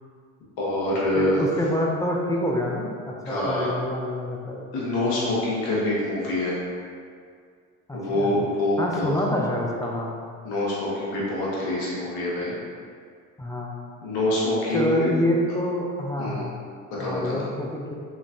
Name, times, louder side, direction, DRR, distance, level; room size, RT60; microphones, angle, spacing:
voice 1, 0.6-1.4 3.2-3.7 4.7-6.6 7.9-9.2 10.4-12.5 14.0-15.1 16.2-16.4 17.0-17.4, left 1 dB, 70° left, -6 dB, 1.4 m, -25 dB
voice 2, 1.1-4.6 7.9-8.4 8.8-10.1 13.4-13.7 14.7-16.5 17.0-17.9, left 1 dB, 10° left, -2 dB, 0.5 m, -27 dB
3.7 x 3.4 x 2.6 m, 2.1 s
supercardioid pair, 80°, 38 cm